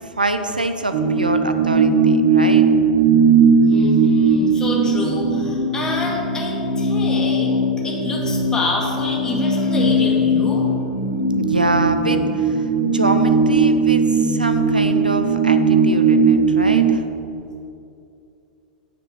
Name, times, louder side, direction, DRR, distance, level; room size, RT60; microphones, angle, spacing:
voice 1, 0.2-2.6 11.4-12.6 12.8-17.0, right 2 dB, 90° right, 8 dB, 0.6 m, -24 dB
sound 1, 0.9-16.8, right 3 dB, 50° right, 1.5 m, -18 dB
voice 2, 3.7-10.6, left 2 dB, 15° left, -3 dB, 2.0 m, -28 dB
9.0 x 5.1 x 5.9 m, 2.6 s
figure-of-eight pair, 95°, 5 cm